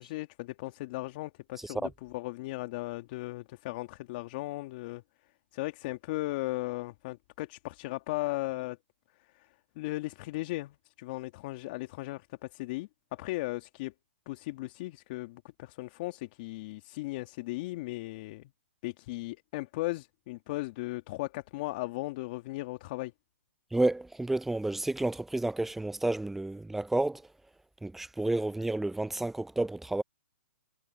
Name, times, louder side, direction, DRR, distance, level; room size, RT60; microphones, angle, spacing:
voice 1, 0.0-5.0 5.5-8.8 9.2-13.9 14.3-18.5 18.8-23.1, left 20 dB, 40° left, 1.9 m, -37 dB
voice 2, 23.7-27.2 27.8-30.0, right 2 dB, 5° right, 0.4 m, -30 dB
hypercardioid pair, 135°, 7 cm